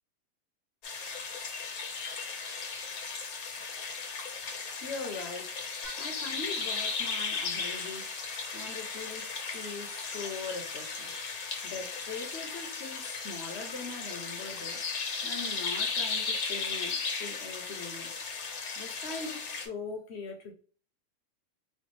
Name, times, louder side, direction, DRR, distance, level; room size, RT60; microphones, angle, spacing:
sound 1, 0.8-19.7, left 4 dB, 90° left, 1.4 m, -36 dB
voice 1, 4.8-5.6 6.0-8.0 8.5-14.8 15.2-18.1 18.8-20.5, left 4 dB, 55° left, 0.9 m, -41 dB
Applause / Keyboard (musical), 5.8-15.2, right 4 dB, 45° right, 0.9 m, -53 dB
4.3 x 2.3 x 2.9 m
omnidirectional pair, 1.5 m